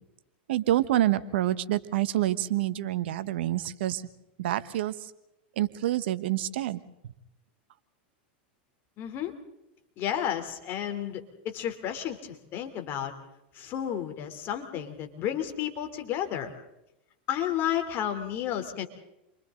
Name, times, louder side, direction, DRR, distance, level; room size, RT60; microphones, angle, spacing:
voice 1, 0.5-4.0 4.4-4.9 5.6-6.8, right 14 dB, 75° right, 13 dB, 1.2 m, -27 dB
voice 2, 9.0-9.3 10.0-13.1 13.5-16.5 17.3-18.9, left 10 dB, 40° left, 5 dB, 3.2 m, -32 dB
29.5 x 24.5 x 3.9 m, 0.87 s
supercardioid pair, 125°, 6 cm